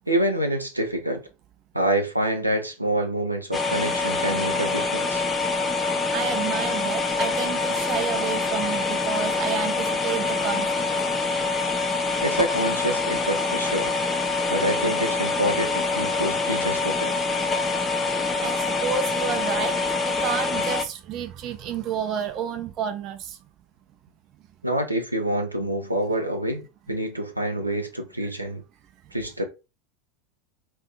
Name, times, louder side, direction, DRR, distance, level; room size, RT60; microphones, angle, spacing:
voice 1, 0.1-1.2 1.7-5.2 12.2-13.9 14.5-17.1 24.6-26.6 26.9-28.6 29.1-29.4, right 1 dB, 90° right, 0.5 m, -26 dB
sound 1, 3.5-20.8, left 3 dB, 20° left, 0.5 m, -25 dB
voice 2, 6.1-10.9 18.4-19.8 20.0-23.4 25.6-25.7, right 7 dB, 40° right, 0.5 m, -30 dB
2.6 x 2.3 x 3.8 m
figure-of-eight pair, 80°, 0 cm